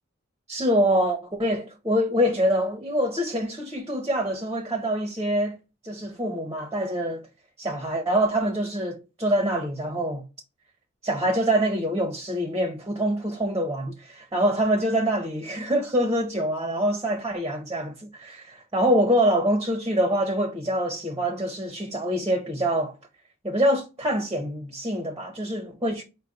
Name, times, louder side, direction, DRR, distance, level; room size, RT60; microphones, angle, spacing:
voice 1, 0.5-5.6 5.8-7.2 7.6-10.2 11.0-22.9 23.4-26.0, equal, 15° right, 0.8 m, -25 dB
5.1 x 2.2 x 4.4 m
head